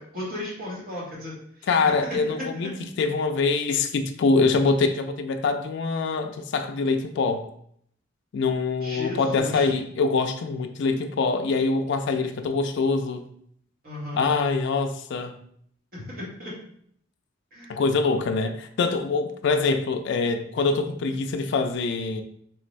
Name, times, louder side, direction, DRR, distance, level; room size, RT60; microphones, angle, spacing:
voice 1, 0.0-1.3 1.6-2.2 8.8-9.7 13.8-14.2 15.9-16.5 17.5-17.8, left 1 dB, 50° right, -5 dB, 1.4 m, -35 dB
voice 2, 1.7-7.5 8.3-13.2 14.1-15.4 17.7-22.2, left 4 dB, 60° left, 6 dB, 0.3 m, -24 dB
3.7 x 2.5 x 3.1 m, 0.66 s
head